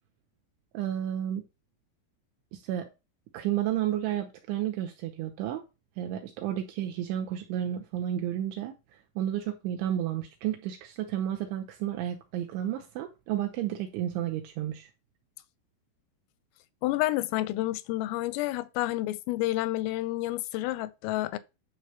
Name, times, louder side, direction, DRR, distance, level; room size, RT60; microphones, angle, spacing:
voice 1, 0.7-1.4 2.5-2.9 3.3-5.6 6.0-8.7 9.2-14.9, right 11 dB, 75° right, 3.0 m, -32 dB
voice 2, 16.8-21.4, left 16 dB, 85° left, 3.4 m, -29 dB
10.5 x 4.8 x 6.9 m
omnidirectional pair, 5.8 m